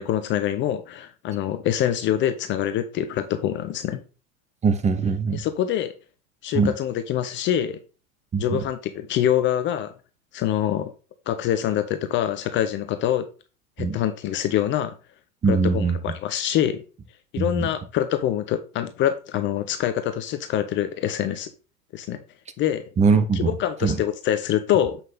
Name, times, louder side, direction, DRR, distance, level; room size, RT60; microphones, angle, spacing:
voice 1, 0.0-4.0 5.3-5.9 6.4-7.8 8.4-9.9 10.3-10.9 11.3-13.3 13.8-14.9 15.5-16.8 17.3-21.5 21.9-22.2 22.6-22.8 23.3-25.0, left 11 dB, 25° left, 0.7 m, -25 dB
voice 2, 4.6-5.4 6.5-6.7 8.3-8.6 13.8-14.0 15.4-16.0 17.4-17.7 23.0-23.5 23.8-24.0, right 5 dB, 15° right, 0.9 m, -21 dB
7.5 x 5.7 x 3.9 m
figure-of-eight pair, 85°, 43 cm